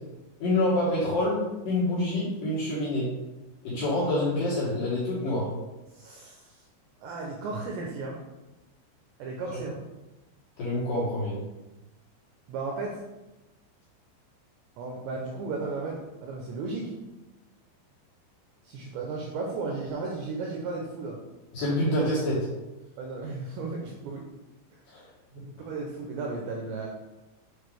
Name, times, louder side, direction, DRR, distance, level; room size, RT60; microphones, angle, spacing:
voice 1, 0.4-3.1 3.6-5.5 9.4-9.6 10.6-11.4 21.5-22.5 24.9-25.1 25.3-25.4, left 1 dB, 60° left, -9 dB, 2.5 m, -27 dB
voice 2, 5.9-6.6 7.0-8.2 9.2-9.8 12.5-13.0 14.8-16.9 18.6-21.2 23.0-24.3 25.4-26.9, right 3 dB, 85° right, 0 dB, 2.5 m, -35 dB
8.0 x 4.7 x 3.3 m, 1.0 s
omnidirectional pair, 5.9 m